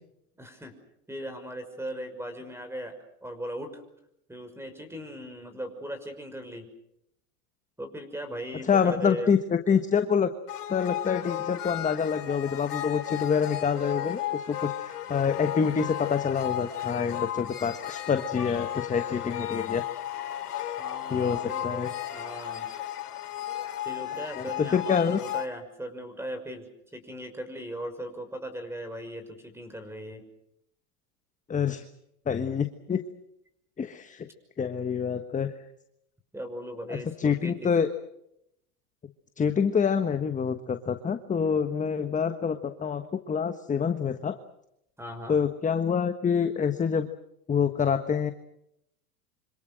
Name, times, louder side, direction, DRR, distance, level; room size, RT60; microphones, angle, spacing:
voice 1, 0.4-0.7 1.1-3.8 4.3-6.7 7.8-9.3 20.8-22.7 23.9-30.2 36.3-37.7 45.0-45.4, equal, 5° right, 10 dB, 5.9 m, -38 dB
voice 2, 8.6-10.3 10.7-19.8 20.5-20.7 21.1-21.9 24.4-25.2 31.5-31.8 32.3-33.0 33.8-34.3 34.6-35.5 36.9-37.9 39.4-44.4 45.3-47.1 47.5-48.3, left 6 dB, 15° left, 8 dB, 1.4 m, -27 dB
sound 1, 10.5-25.5, left 11 dB, 85° left, 2.9 m, -34 dB
27.0 x 26.5 x 6.4 m, 0.77 s
hypercardioid pair, 110°, 46 cm